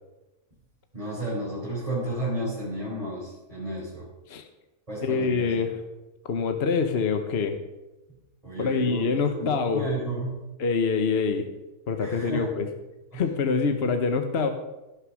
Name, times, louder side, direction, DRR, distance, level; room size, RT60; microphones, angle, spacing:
voice 1, 0.9-4.1 4.9-5.6 8.4-10.4 12.0-12.5 13.1-13.2, right 1 dB, 25° right, -9 dB, 4.5 m, -32 dB
voice 2, 5.0-5.8 6.2-7.6 8.6-9.8 10.6-11.4 11.9-12.7 13.1-14.5, left 5 dB, 50° left, 7 dB, 1.2 m, -25 dB
17.0 x 6.7 x 6.4 m, 1.0 s
omnidirectional pair, 1.5 m